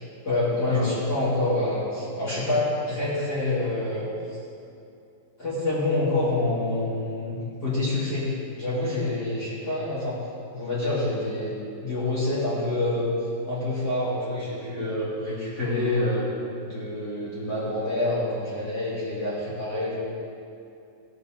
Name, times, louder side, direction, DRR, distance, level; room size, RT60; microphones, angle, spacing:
voice 1, 0.2-4.4 5.4-8.3 8.6-10.3 10.5-13.1 13.4-16.3 16.6-20.0, left 2 dB, 30° left, -10 dB, 2.2 m, -27 dB
16.0 x 7.9 x 3.8 m, 2.6 s
omnidirectional pair, 4.9 m